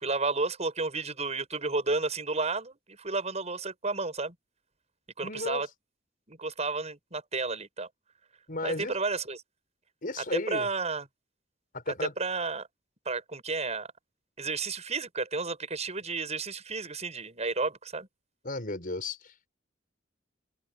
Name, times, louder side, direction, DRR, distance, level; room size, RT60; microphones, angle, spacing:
voice 1, 0.0-4.3 5.2-5.7 6.3-7.9 8.6-9.4 10.3-11.1 11.9-12.7 13.0-13.9 14.4-18.1, right 3 dB, 35° right, 6.9 m, -32 dB
voice 2, 5.2-5.6 8.5-9.0 10.0-10.7 11.7-12.1 18.4-19.5, left 2 dB, 50° left, 5.5 m, -34 dB
open air
head